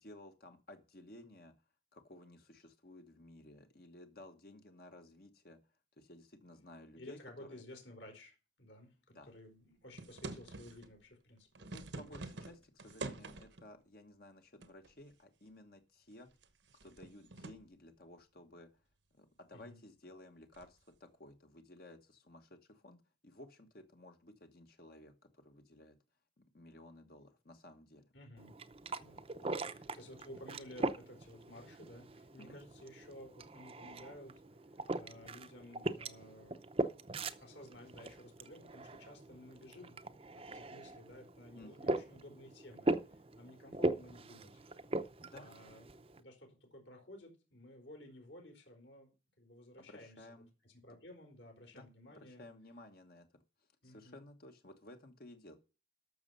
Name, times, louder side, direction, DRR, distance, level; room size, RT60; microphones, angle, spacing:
voice 1, 0.0-1.5 1.9-5.6 6.0-7.6 9.1-9.3 11.7-16.3 16.8-18.7 19.1-26.0 26.4-28.0 29.4-29.5 32.4-32.6 41.5-42.0 45.2-45.5 49.8-50.5 51.7-51.9 52.2-53.3 53.6-55.6, left 1 dB, 50° left, 5 dB, 1.3 m, -56 dB
voice 2, 7.0-12.2 19.5-19.8 28.1-28.5 29.0-36.6 37.4-39.9 40.4-44.6 45.3-45.8 46.2-49.1 49.4-50.4 50.6-52.4 53.8-54.2, left 1 dB, 70° left, 1 dB, 4.4 m, -55 dB
sound 1, 9.9-10.9 11.4-13.7 14.6-15.1 15.5-15.6 16.2-17.7 20.5-20.8, right 3 dB, 70° right, 1.1 m, -47 dB
sound 2, 28.4-46.2, right 2 dB, 30° right, 0.7 m, -41 dB
13.5 x 6.4 x 5.5 m, 0.32 s
head